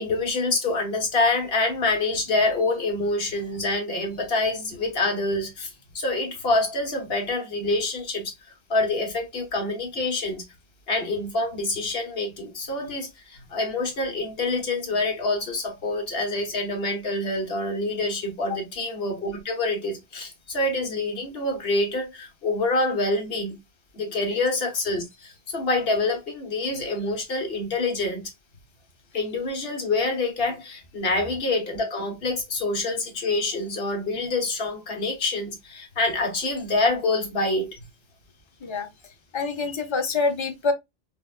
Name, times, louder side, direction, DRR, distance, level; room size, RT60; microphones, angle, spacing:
voice 1, 0.0-10.4 10.9-23.5 23.9-28.2 29.1-37.8, left 2 dB, 65° left, 1.2 m, -26 dB
voice 2, 39.3-40.7, left 4 dB, 40° left, 0.4 m, -26 dB
4.1 x 2.2 x 2.3 m
omnidirectional pair, 1.1 m